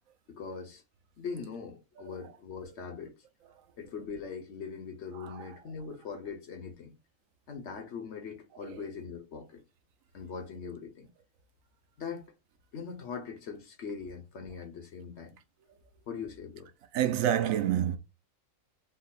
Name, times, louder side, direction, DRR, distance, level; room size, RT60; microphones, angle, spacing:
voice 1, 0.3-0.8 1.2-3.1 3.8-7.0 7.5-9.6 10.1-11.1 12.0-12.3 12.7-15.4 16.1-16.7, left 5 dB, 60° left, 1.1 m, -41 dB
voice 2, 5.1-5.5 8.6-8.8 16.9-18.0, right 10 dB, 90° right, 1.0 m, -29 dB
3.9 x 2.0 x 4.1 m
omnidirectional pair, 1.4 m